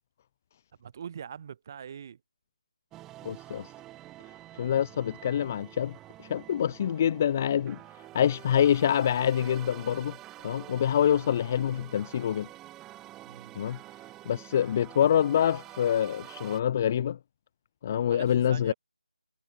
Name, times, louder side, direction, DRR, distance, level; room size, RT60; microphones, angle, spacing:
voice 1, 0.8-2.2 13.2-13.6 18.1-18.7, right 8 dB, 25° right, 7.5 m, -43 dB
sound 1, 2.9-16.6, right 15 dB, 5° right, 8.0 m, -48 dB
voice 2, 3.2-3.6 4.6-5.9 6.3-7.8 8.1-10.1 10.4-12.5 13.6-13.8 14.3-17.2 17.8-18.7, left 9 dB, 20° left, 0.7 m, -26 dB
figure-of-eight pair, 175°, 4 cm